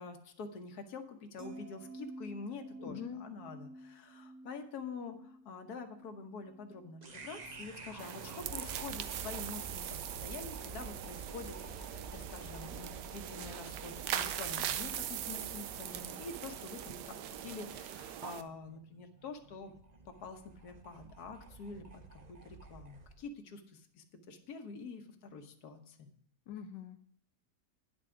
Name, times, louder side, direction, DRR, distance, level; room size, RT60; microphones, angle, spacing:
voice 1, 0.0-19.7 20.0-22.0 22.3-26.1, left 4 dB, 65° left, 6 dB, 1.6 m, -47 dB
sound 1, 1.4-7.7 8.0-8.3, right 1 dB, 75° right, 1.8 m, -51 dB
voice 2, 2.8-3.3 26.5-27.0, left 8 dB, 90° left, 8 dB, 1.3 m, -44 dB
sound 2, 7.0-23.2, right 4 dB, 40° right, 0.6 m, -50 dB
sound 3, 8.0-18.4, right 10 dB, 90° right, 1.3 m, -41 dB
10.0 x 7.7 x 4.9 m, 0.67 s
omnidirectional pair, 1.8 m